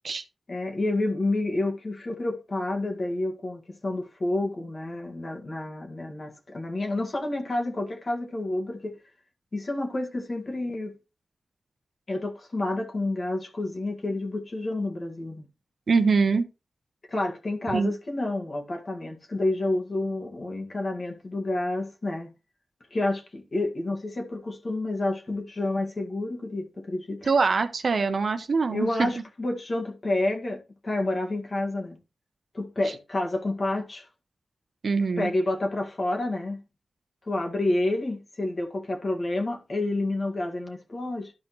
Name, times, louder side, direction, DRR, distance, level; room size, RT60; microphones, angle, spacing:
voice 1, 0.5-8.9 9.5-10.9 12.1-15.4 17.1-22.3 22.9-27.3 28.7-32.0 32.5-34.1 35.2-36.6 37.3-41.3, left 2 dB, 45° left, 1.9 m, -29 dB
voice 2, 15.9-16.5 17.7-17.9 27.3-29.1 34.8-35.3, right 4 dB, 65° right, 0.9 m, -23 dB
12.5 x 5.2 x 3.1 m
wide cardioid pair, 75°, 0 cm